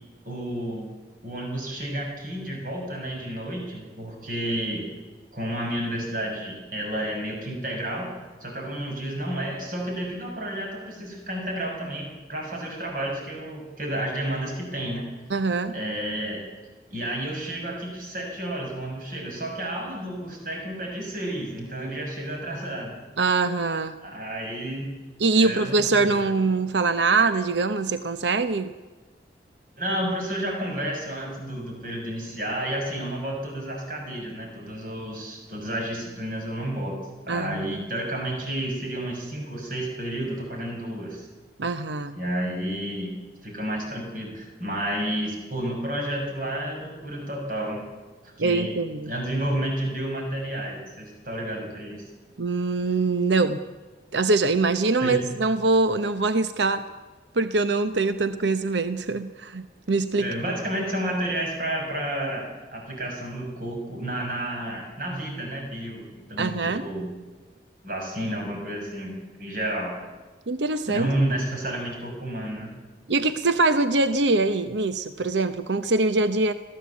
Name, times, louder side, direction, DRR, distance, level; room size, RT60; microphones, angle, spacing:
voice 1, 0.2-0.9 1.2-4.9 5.3-8.1 8.4-15.1 15.7-16.4 16.9-22.9 24.0-24.9 25.3-26.2 29.8-37.0 37.2-41.3 42.1-43.1 43.4-47.8 48.4-48.7 49.0-52.0 55.0-55.3 60.2-67.1 67.8-70.0 70.9-72.7, right 1 dB, 50° right, 0 dB, 6.6 m, -31 dB
voice 2, 15.3-15.8 23.2-24.0 25.2-28.7 37.3-37.7 41.6-42.2 48.4-49.1 52.4-53.6 54.1-56.9 57.3-60.3 66.4-66.8 70.5-71.1 73.1-76.5, right 3 dB, 85° right, 11 dB, 0.9 m, -23 dB
21.5 x 15.5 x 8.4 m, 1.3 s
head